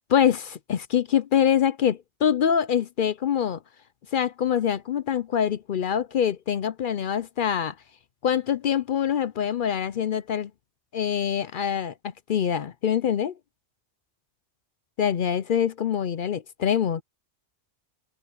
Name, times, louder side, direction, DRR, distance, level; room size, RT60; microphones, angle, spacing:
voice 1, 0.1-3.6 4.1-7.7 8.2-10.5 10.9-11.9 12.3-13.3 15.0-17.0, left 8 dB, 55° left, 0.6 m, -24 dB
open air
omnidirectional pair, 1.2 m